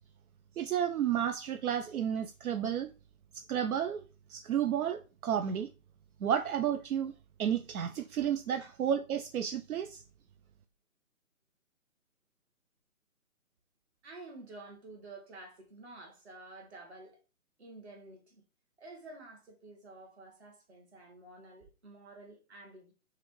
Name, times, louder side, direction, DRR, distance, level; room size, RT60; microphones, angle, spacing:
voice 1, 0.6-2.9 3.3-4.0 4.3-5.7 6.2-7.1 7.4-10.0, right 9 dB, 80° right, 0.5 m, -32 dB
voice 2, 14.0-17.2 17.6-18.4 18.8-22.9, right 2 dB, 45° right, 1.4 m, -50 dB
5.6 x 2.5 x 3.1 m
hypercardioid pair, 160°, 43 cm